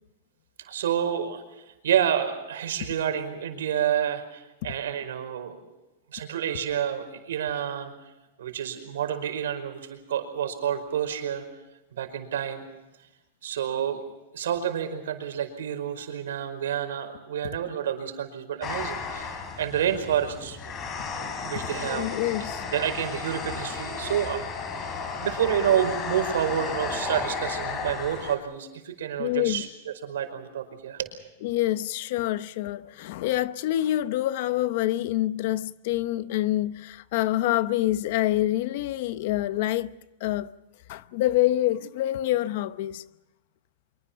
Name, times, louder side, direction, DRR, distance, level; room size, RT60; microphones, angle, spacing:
voice 1, 0.6-5.6 6.1-7.9 8.4-11.4 12.0-12.6 13.4-14.0 14.3-20.8 21.2-22.1 22.7-24.7 24.9-31.1, right 9 dB, 90° right, 5.1 m, -29 dB
sound 1, 18.6-28.4, left 4 dB, 20° left, 3.1 m, -34 dB
voice 2, 21.8-22.6 29.2-29.7 31.4-39.9 40.2-40.5 40.9-43.0, left 14 dB, 45° left, 0.8 m, -26 dB
25.0 x 24.0 x 5.8 m
supercardioid pair, 180°, 0 cm